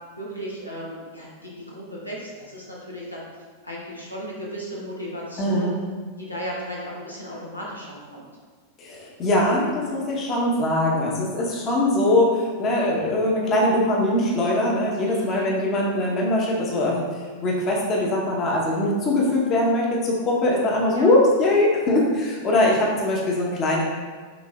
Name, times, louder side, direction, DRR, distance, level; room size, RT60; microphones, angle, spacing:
voice 1, 0.2-3.2 3.6-5.7 6.2-8.3 15.0-15.5 20.9-21.1, equal, 85° left, -4 dB, 1.0 m, -35 dB
voice 2, 5.4-5.8 8.8-23.8, left 1 dB, 30° left, -3 dB, 1.0 m, -22 dB
6.0 x 3.7 x 2.4 m, 1.5 s
figure-of-eight pair, 90°, 0 cm